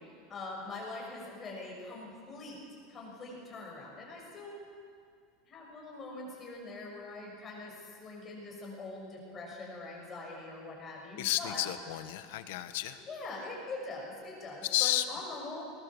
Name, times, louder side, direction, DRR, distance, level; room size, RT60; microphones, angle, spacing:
voice 1, 0.0-2.6 2.9-4.6 5.4-11.6 13.1-15.6, left 2 dB, 20° left, -2 dB, 6.2 m, -43 dB
voice 2, 11.2-13.0 14.6-15.0, left 14 dB, 75° left, 10 dB, 1.4 m, -31 dB
21.0 x 20.0 x 7.3 m, 2.2 s
supercardioid pair, 160°, 0 cm